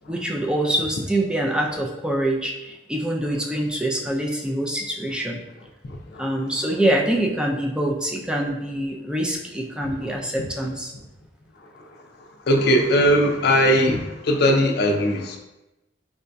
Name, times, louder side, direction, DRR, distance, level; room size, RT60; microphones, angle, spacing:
voice 1, 0.1-5.4 6.2-10.9, right 1 dB, 5° right, 0 dB, 0.4 m, -25 dB
voice 2, 5.8-6.2 10.0-10.1 12.5-15.4, equal, 60° left, 2 dB, 0.5 m, -19 dB
4.6 x 2.6 x 2.2 m, 0.98 s
head